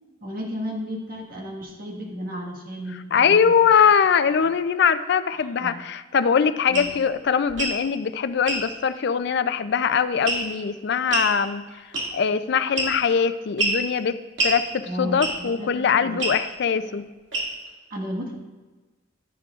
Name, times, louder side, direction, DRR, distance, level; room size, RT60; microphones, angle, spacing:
voice 1, 0.2-3.6 5.3-5.8 6.7-6.9 14.9-15.7 16.0-16.2 16.8-16.9 17.9-18.3, equal, 50° right, -1 dB, 1.6 m, -33 dB
voice 2, 3.1-11.6 12.1-14.2 14.4-14.7 15.0-17.1, left 6 dB, 60° left, 12 dB, 0.4 m, -21 dB
sound 1, 6.7-6.9 7.5-7.8 8.5-8.6 10.3-10.6 11.1-11.3 11.9-12.3 12.8-13.1 13.6-13.8 14.4-14.6 15.2-15.5 16.2-16.4 17.3-17.7, right 2 dB, 75° right, 2.3 m, -25 dB
14.0 x 8.3 x 2.4 m, 1.3 s
head